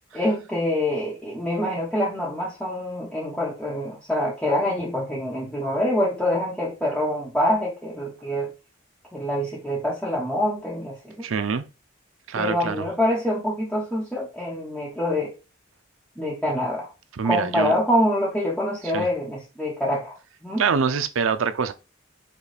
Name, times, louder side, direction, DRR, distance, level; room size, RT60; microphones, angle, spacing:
voice 1, 0.1-8.5 9.1-11.3 12.4-15.3 16.2-16.9 17.2-20.2 20.4-20.6, left 1 dB, 5° left, 1.1 m, -25 dB
voice 2, 11.2-11.6 12.3-12.9 17.2-17.8 18.9-19.1 20.6-21.7, right 5 dB, 85° right, 0.5 m, -24 dB
5.2 x 2.4 x 4.1 m
head